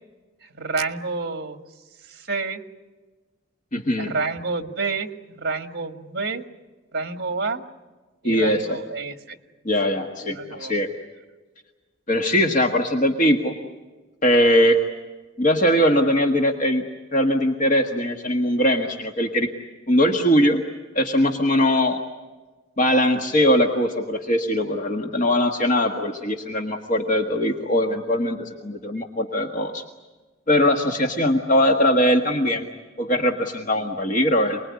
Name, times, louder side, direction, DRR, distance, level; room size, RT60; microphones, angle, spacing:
voice 1, 0.4-1.6 2.0-2.6 4.0-6.4 6.9-7.7 8.2-9.4 10.2-10.8, right 4 dB, 55° right, 8 dB, 1.8 m, -29 dB
voice 2, 3.7-4.1 8.2-8.8 9.6-10.9 12.1-13.5 14.2-14.8 15.4-16.9 17.1-19.5 19.9-20.6 20.9-22.0 22.8-29.8 30.5-32.7 33.0-34.6, equal, 40° left, 3 dB, 1.6 m, -21 dB
28.0 x 21.0 x 9.6 m, 1.3 s
head